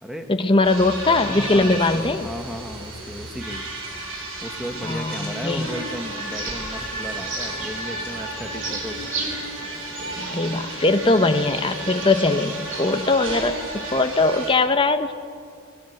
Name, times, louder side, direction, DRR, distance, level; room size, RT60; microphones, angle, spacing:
voice 1, 0.3-2.3 4.8-5.7 10.2-15.1, left 2 dB, 25° left, 7 dB, 0.9 m, -21 dB
sound 1, 0.6-14.5, right 1 dB, 75° right, 7.0 m, -33 dB
voice 2, 1.1-3.7 4.4-9.1, equal, ahead, 5 dB, 1.6 m, -35 dB
sound 2, 5.9-13.2, right 3 dB, 35° right, 3.5 m, -36 dB
26.5 x 21.5 x 8.2 m, 2.3 s
head